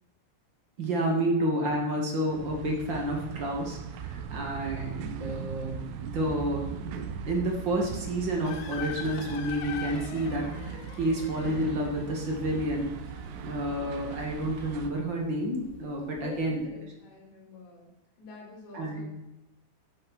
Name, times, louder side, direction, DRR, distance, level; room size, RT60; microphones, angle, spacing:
voice 1, 0.8-12.9 13.4-16.6 18.7-19.1, right 1 dB, 50° right, 0 dB, 1.3 m, -30 dB
sound 1, 2.3-14.9, right 7 dB, 80° right, 2.9 m, -39 dB
sound 2, 8.4-16.7, left 8 dB, 90° left, 3.5 m, -44 dB
voice 2, 16.2-17.9 18.2-19.1, left 3 dB, 70° left, -2 dB, 5.7 m, -48 dB
12.0 x 6.1 x 6.0 m, 0.95 s
omnidirectional pair, 5.3 m